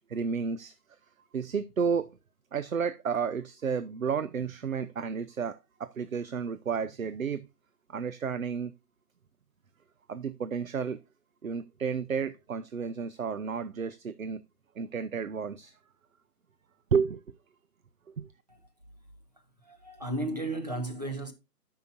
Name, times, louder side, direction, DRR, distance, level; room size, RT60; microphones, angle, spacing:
voice 1, 0.1-0.7 1.3-2.1 2.5-7.5 7.9-8.7 10.1-11.0 11.4-14.4 14.8-15.7 16.9-17.2 18.1-18.3, right 6 dB, 55° right, 0.6 m, -31 dB
voice 2, 19.6-21.3, right 1 dB, 25° right, 0.8 m, -34 dB
13.0 x 5.6 x 2.6 m
figure-of-eight pair, 160°, 49 cm